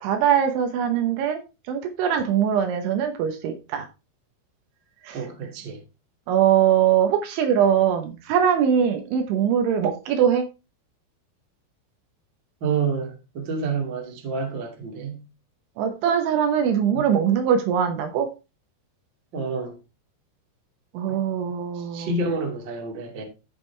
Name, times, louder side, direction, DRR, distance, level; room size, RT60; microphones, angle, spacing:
voice 1, 0.0-1.4 1.7-3.8 5.0-5.2 6.3-10.4 15.8-18.3 20.9-22.1, right 8 dB, 75° right, 3.3 m, -22 dB
voice 2, 5.1-5.8 12.6-15.2 16.9-17.2 19.3-19.8 21.1-21.2 21.7-23.2, right 4 dB, 40° right, 1.8 m, -29 dB
14.5 x 5.2 x 3.3 m
omnidirectional pair, 5.8 m